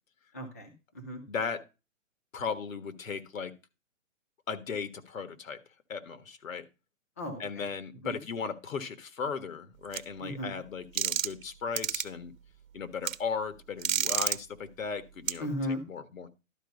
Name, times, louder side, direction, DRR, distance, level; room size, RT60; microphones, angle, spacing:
voice 1, 0.3-1.2 7.2-7.4 8.0-8.1 10.2-10.5 15.4-15.8, equal, 15° left, 5 dB, 0.4 m, -35 dB
voice 2, 1.3-1.6 2.3-3.5 4.5-5.6 5.9-6.6 7.4-12.3 12.7-15.5 15.9-16.3, left 5 dB, 85° left, 12 dB, 1.5 m, -36 dB
sound 1, 9.9-10.0 11.0-11.4 11.8-12.0 13.1-13.2 13.8-14.4 15.3-15.4, right 10 dB, 85° right, 0.9 m, -28 dB
12.0 x 4.8 x 5.2 m, 0.28 s
hypercardioid pair, 165°, 39 cm